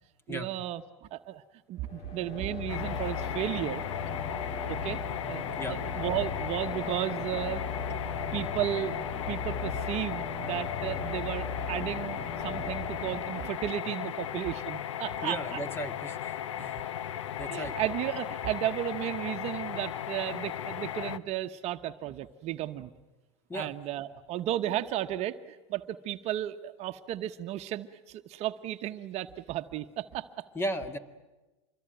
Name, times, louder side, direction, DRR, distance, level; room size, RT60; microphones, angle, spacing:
voice 1, 0.3-0.8 1.1-1.4 1.7-3.8 4.7-5.0 5.3-7.6 7.9-8.0 8.3-15.6 16.5-16.7 17.5-22.9 23.5-30.4, right 13 dB, 45° right, 8 dB, 1.1 m, -34 dB
sound 1, 1.8-13.7, left 4 dB, 45° left, 4.4 m, -38 dB
sound 2, 2.7-21.2, left 10 dB, 85° left, 1.0 m, -36 dB
voice 2, 15.2-16.8 17.4-17.7 23.5-23.7 24.7-24.8 30.5-31.0, equal, 15° left, 9 dB, 2.1 m, -36 dB
26.0 x 22.0 x 9.2 m, 1.1 s
hypercardioid pair, 110°, 15 cm